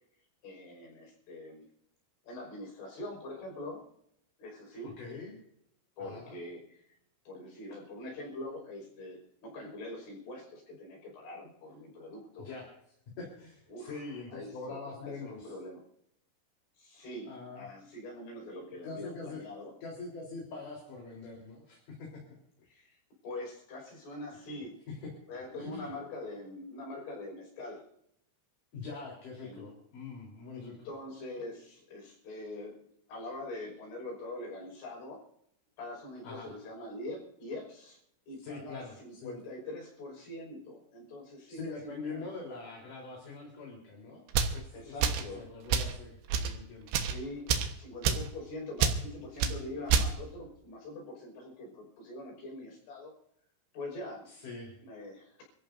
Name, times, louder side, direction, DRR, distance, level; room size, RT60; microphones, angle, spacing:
voice 1, 0.4-1.7 2.2-3.8 4.4-5.0 6.0-6.8 7.3-12.5 13.7-14.0 14.3-15.8 16.8-19.7 22.7-24.8 25.3-27.9 29.4-29.6 30.5-35.2 35.8-38.0 38.3-42.3 44.7-45.5 47.0-53.1 53.7-54.3 54.8-55.4, left 1 dB, 65° left, -1 dB, 7.8 m, -44 dB
voice 2, 4.8-5.3 6.0-6.4 12.4-12.7 13.2-15.5 17.2-17.7 18.8-19.4 19.8-22.2 24.5-24.6 25.0-25.1 25.5-26.4 28.7-30.9 36.2-36.5 38.4-39.3 41.5-44.2 44.5-46.9 54.2-54.8, left 4 dB, 45° left, -2 dB, 5.0 m, -44 dB
sound 1, 44.3-44.6 45.0-45.3 45.7-45.9 46.3-46.5 46.9-47.2 47.5-47.7 48.0-48.3 48.8-49.0 49.4-49.6 49.9-50.1, right 6 dB, 70° right, 3.1 m, -27 dB
28.5 x 14.0 x 2.7 m, 0.73 s
omnidirectional pair, 5.7 m